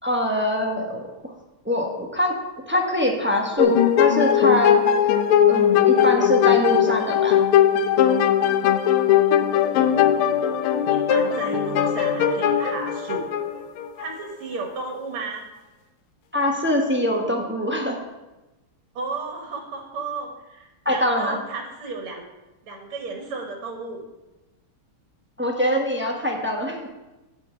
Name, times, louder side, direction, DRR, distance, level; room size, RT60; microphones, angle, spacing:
voice 1, 0.0-1.0 1.6-2.3 2.7-4.8 5.5-7.4 16.3-18.0 20.8-21.4 25.4-26.9, equal, 10° right, 0 dB, 0.8 m, -23 dB
sound 1, 3.6-14.1, left 9 dB, 85° left, 1.6 m, -19 dB
voice 2, 10.9-13.2 14.0-15.4 19.0-22.2 22.6-24.0, right 3 dB, 80° right, 2 dB, 2.4 m, -33 dB
8.4 x 5.6 x 7.7 m, 1.0 s
omnidirectional pair, 2.4 m